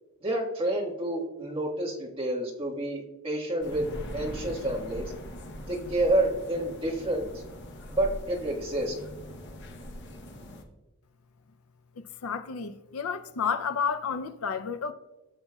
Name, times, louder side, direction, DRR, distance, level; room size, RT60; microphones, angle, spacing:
voice 1, 0.2-3.9 4.1-5.1 5.6-7.3 7.9-8.9, right 1 dB, 25° right, 1.6 m, -29 dB
sound 1, 3.6-10.6, left 1 dB, 55° left, 0.9 m, -41 dB
voice 2, 12.0-14.9, left 6 dB, 75° left, 0.5 m, -31 dB
15.5 x 6.8 x 2.3 m
head